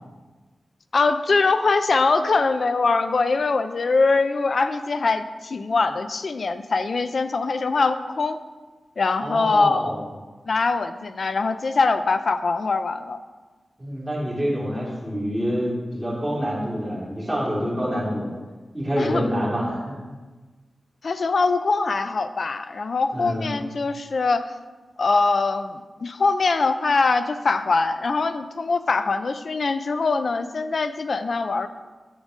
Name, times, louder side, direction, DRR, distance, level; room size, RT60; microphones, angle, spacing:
voice 1, 0.9-8.4 9.0-9.9 10.5-13.2 19.0-19.4 21.0-24.4 25.0-31.7, left 3 dB, 55° left, 10 dB, 0.5 m, -22 dB
voice 2, 9.2-10.0 13.8-18.3 18.7-20.0 23.1-23.5, equal, 10° right, -5 dB, 2.6 m, -27 dB
10.5 x 4.0 x 6.2 m, 1.3 s
wide cardioid pair, 135°, 0 cm